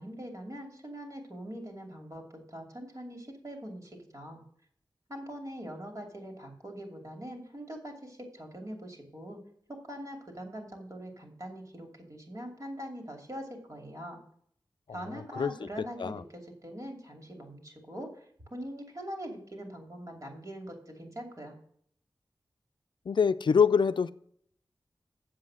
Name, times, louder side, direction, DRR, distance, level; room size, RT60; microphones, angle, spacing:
voice 1, 0.0-4.4 5.1-9.4 9.7-14.2 14.9-21.6, equal, 45° right, 1 dB, 2.6 m, -42 dB
voice 2, 15.1-16.2 23.1-24.1, left 6 dB, 75° left, 13 dB, 0.4 m, -26 dB
7.8 x 7.7 x 6.1 m, 0.63 s
wide cardioid pair, 90°, 8 cm